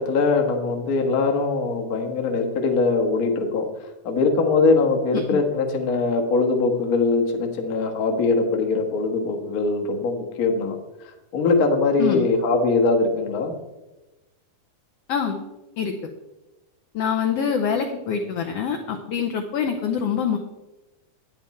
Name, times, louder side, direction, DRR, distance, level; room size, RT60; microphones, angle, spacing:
voice 1, 0.0-3.6 4.0-10.7 11.0-13.5, left 3 dB, 60° left, 3 dB, 0.9 m, -22 dB
voice 2, 16.9-20.4, left 7 dB, 80° left, 4 dB, 1.4 m, -25 dB
10.5 x 9.4 x 4.2 m, 1.1 s
omnidirectional pair, 3.7 m